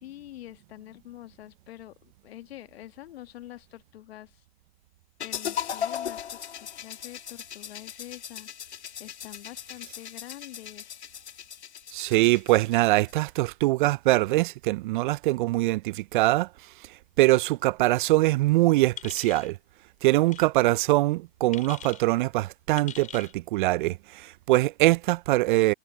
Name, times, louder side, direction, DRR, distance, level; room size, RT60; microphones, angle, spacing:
voice 1, 0.0-4.4 5.2-8.5 9.0-11.0, left 14 dB, 65° left, 1.7 m, -45 dB
sound 1, 5.2-13.2, left 9 dB, 80° left, 2.2 m, -38 dB
voice 2, 11.9-16.5 17.2-19.6 20.0-25.7, right 19 dB, 50° right, 0.5 m, -23 dB
sound 2, 19.0-19.5 20.3-20.5 21.5-22.0 22.8-23.3, left 9 dB, 20° left, 3.3 m, -42 dB
hypercardioid pair, 110°, 33 cm